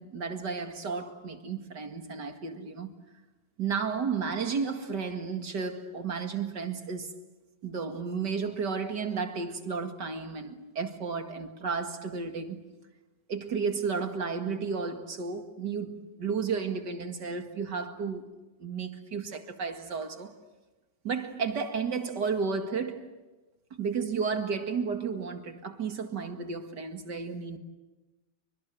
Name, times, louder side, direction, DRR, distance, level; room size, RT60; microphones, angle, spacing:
voice 1, 0.0-2.9 3.6-7.1 7.6-12.6 13.3-18.2 18.6-20.3 21.0-23.2 23.8-27.6, right 5 dB, 85° right, 2.7 m, -33 dB
29.5 x 24.5 x 7.7 m
omnidirectional pair, 1.8 m